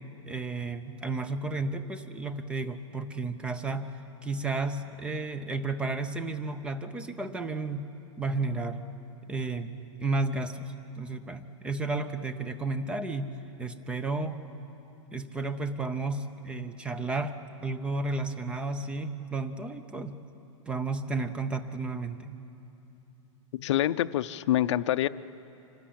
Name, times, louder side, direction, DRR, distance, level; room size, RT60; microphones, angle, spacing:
voice 1, 0.3-3.9 4.2-7.9 8.2-8.9 9.3-14.4 15.1-20.2 20.7-22.4, right 3 dB, 5° right, 10 dB, 0.5 m, -32 dB
voice 2, 23.5-25.1, left 13 dB, 60° left, 13 dB, 0.5 m, -26 dB
25.5 x 13.5 x 8.6 m, 2.9 s
supercardioid pair, 160°, 17 cm